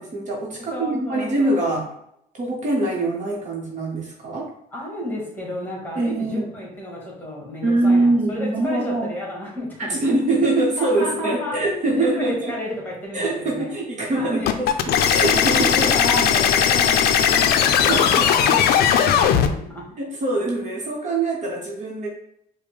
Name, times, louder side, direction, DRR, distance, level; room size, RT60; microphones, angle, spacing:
voice 1, 0.0-1.9 2.3-4.5 6.0-6.5 7.6-9.1 9.8-12.5 13.1-15.9 17.8-18.3 20.0-22.1, right 2 dB, 45° right, -2 dB, 1.1 m, -23 dB
voice 2, 0.7-1.6 4.7-10.1 10.8-11.5 11.9-13.7 14.1-14.5 15.3-19.8, left 1 dB, 10° left, -3 dB, 1.6 m, -31 dB
sound 1, 14.5-19.5, left 8 dB, 70° left, 0.4 m, -18 dB
4.7 x 2.2 x 3.5 m, 0.74 s
cardioid pair, 110°, 17 cm